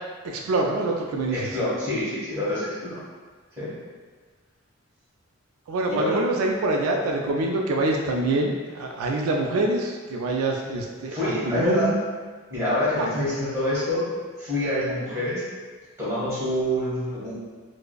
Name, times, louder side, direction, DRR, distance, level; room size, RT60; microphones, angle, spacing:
voice 1, 0.2-1.4 5.7-12.0 13.0-13.1, right 2 dB, 85° right, 1 dB, 0.3 m, -25 dB
voice 2, 1.3-3.0 3.6-3.7 5.9-6.2 11.1-11.9 12.5-14.0 14.4-15.4 16.0-17.3, left 1 dB, 15° right, -10 dB, 1.5 m, -26 dB
4.8 x 2.0 x 2.3 m, 1.5 s
head